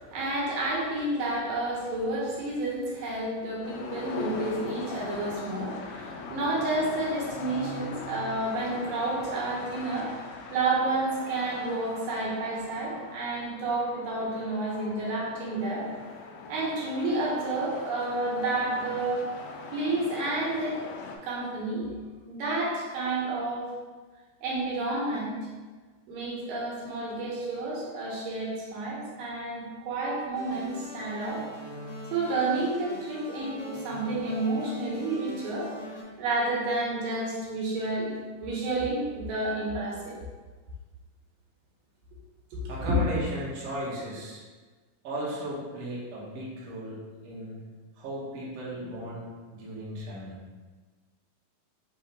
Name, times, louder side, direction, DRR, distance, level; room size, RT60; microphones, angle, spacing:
voice 1, 0.0-15.8 16.5-19.3 19.6-20.8 21.2-21.9 22.3-23.7 24.4-25.4 26.1-31.4 32.1-35.7 36.2-38.1 38.4-40.2 42.5-42.7, right 2 dB, 70° right, -5 dB, 2.5 m, -30 dB
sound 1, 3.6-21.2, left 4 dB, 90° left, 1.8 m, -40 dB
sound 2, 30.3-36.0, left 1 dB, 70° left, 2.3 m, -42 dB
voice 2, 42.7-44.4 45.0-47.0 47.2-47.6 48.0-50.4, equal, 90° right, -6 dB, 1.2 m, -35 dB
5.8 x 2.2 x 4.1 m, 1.4 s
omnidirectional pair, 4.3 m